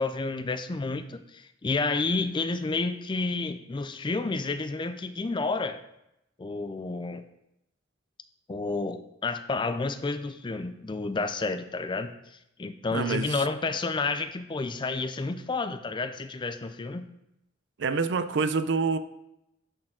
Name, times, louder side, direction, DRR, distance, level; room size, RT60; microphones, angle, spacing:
voice 1, 0.0-5.8 6.4-7.3 8.5-12.1 12.6-17.1, left 3 dB, 25° left, 10 dB, 0.4 m, -30 dB
voice 2, 12.9-13.4 17.8-19.0, right 4 dB, 65° right, 12 dB, 0.5 m, -27 dB
11.5 x 4.4 x 3.8 m, 0.84 s
head